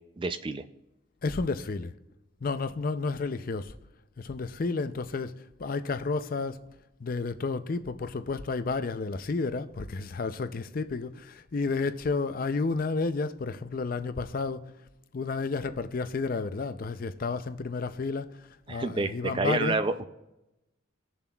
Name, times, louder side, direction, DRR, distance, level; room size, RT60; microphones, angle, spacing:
voice 1, 0.2-0.6 18.7-19.9, right 3 dB, 25° right, 0.3 m, -28 dB
voice 2, 1.2-1.9 2.4-3.7 4.2-5.3 5.6-6.6 7.0-14.6 15.1-19.8, left 4 dB, 45° left, 0.4 m, -31 dB
19.5 x 7.0 x 2.3 m
head